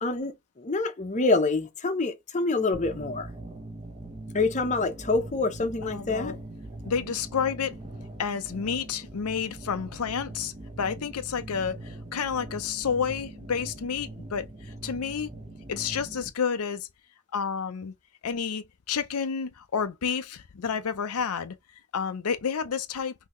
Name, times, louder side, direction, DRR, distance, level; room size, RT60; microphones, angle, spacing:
voice 1, 0.0-3.3 4.3-6.3, left 3 dB, 30° left, 0.7 m, -26 dB
sound 1, 2.7-16.3, right 2 dB, 25° right, 0.9 m, -42 dB
voice 2, 5.8-6.4 6.8-7.7 8.2-14.5 14.8-15.3 15.7-16.9 17.3-17.9 18.2-21.5 21.9-23.1, left 6 dB, 80° left, 0.5 m, -30 dB
5.5 x 2.8 x 3.0 m
head